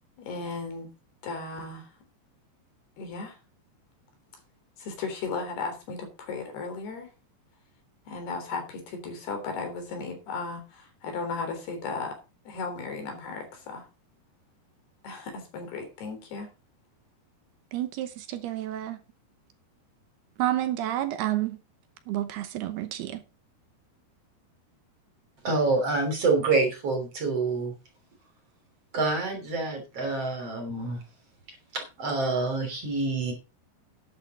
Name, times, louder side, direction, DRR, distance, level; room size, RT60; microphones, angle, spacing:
voice 1, 0.2-0.9 1.2-1.9 3.0-3.4 4.8-7.1 8.1-12.2 12.5-13.9 15.0-16.5, left 4 dB, 65° left, 5.3 m, -35 dB
voice 2, 17.7-19.0 20.4-21.6 22.1-23.2, right 13 dB, 75° right, 2.8 m, -30 dB
voice 3, 25.4-27.7 28.9-31.0 31.7-33.3, right 3 dB, 35° right, 3.8 m, -27 dB
12.0 x 9.7 x 4.2 m
omnidirectional pair, 4.9 m